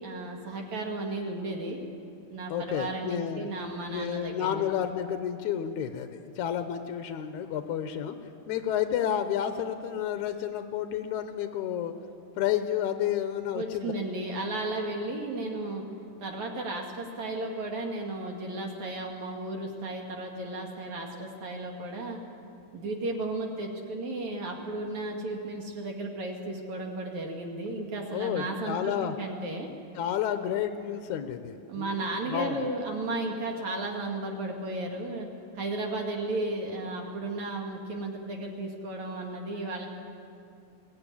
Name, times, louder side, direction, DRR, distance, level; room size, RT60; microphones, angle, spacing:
voice 1, 0.0-1.8 2.3-4.7 13.5-15.8 16.2-22.2 22.7-29.7 31.7-35.3 35.5-39.9, right 2 dB, 55° right, 1 dB, 3.0 m, -34 dB
voice 2, 2.5-3.5 3.9-8.1 8.5-11.9 12.4-13.9 28.1-29.2 30.0-32.6, left 10 dB, 75° left, 8 dB, 1.8 m, -31 dB
21.0 x 17.0 x 9.9 m, 2.5 s
omnidirectional pair, 4.4 m